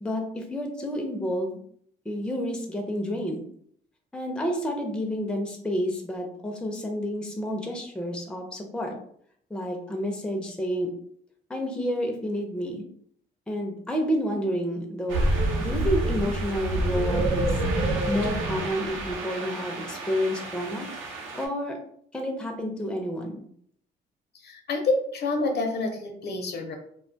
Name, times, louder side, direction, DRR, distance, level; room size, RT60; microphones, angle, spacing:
voice 1, 0.0-1.6 2.1-3.4 4.1-8.9 9.5-10.9 11.5-12.9 13.5-15.3 15.6-17.6 18.1-20.9 21.3-21.8 22.1-23.4, equal, 5° left, 2 dB, 0.4 m, -29 dB
sound 1, 15.1-21.4, right 2 dB, 75° right, 0.6 m, -28 dB
voice 2, 24.3-26.8, left 3 dB, 55° left, 3 dB, 0.6 m, -28 dB
2.3 x 2.2 x 2.6 m, 0.64 s
cardioid pair, 90°, 20 cm